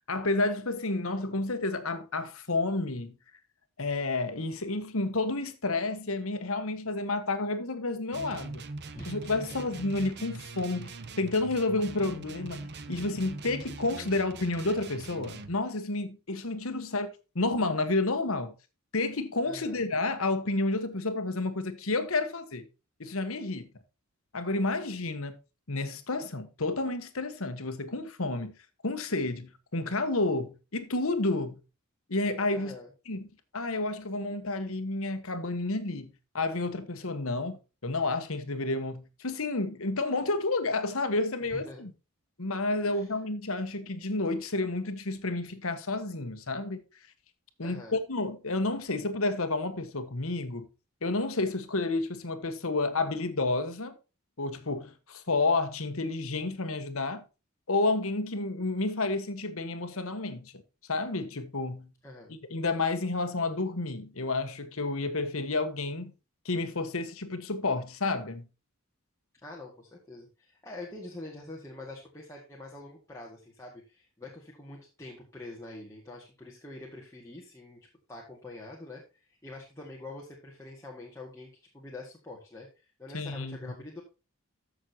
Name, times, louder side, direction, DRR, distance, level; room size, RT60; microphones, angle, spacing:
voice 1, 0.1-3.1 3.8-8.6 9.1-18.5 18.9-22.7 23.0-23.7 24.3-25.3 25.7-28.5 28.8-31.6 32.1-32.7 33.1-33.2 33.5-41.9 42.4-46.8 47.6-50.7 51.0-53.9 54.4-57.2 57.7-60.5 60.9-61.9 62.5-66.1 66.4-68.4 83.1-83.7, left 2 dB, 65° left, 1.4 m, -30 dB
sound 1, 8.1-15.6, right 3 dB, 50° right, 0.8 m, -42 dB
voice 2, 19.5-19.8 32.5-32.9 41.4-41.8 42.8-43.1 47.6-47.9 62.0-62.3 69.4-77.8 78.1-84.0, left 2 dB, 15° left, 1.9 m, -45 dB
14.0 x 6.5 x 2.9 m
head